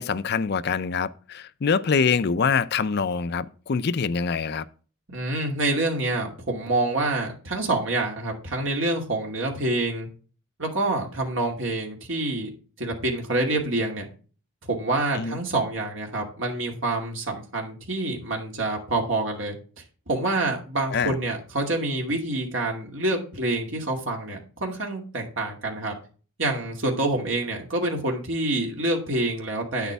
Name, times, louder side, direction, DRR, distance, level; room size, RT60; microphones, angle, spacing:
voice 1, 0.0-4.6 15.1-15.4 20.9-21.1, left 5 dB, 50° left, 0.5 m, -25 dB
voice 2, 5.1-10.1 10.6-12.5 12.8-14.1 14.6-19.5 20.1-25.9 26.4-29.9, right 2 dB, 60° right, 2.4 m, -27 dB
9.2 x 8.2 x 3.5 m
head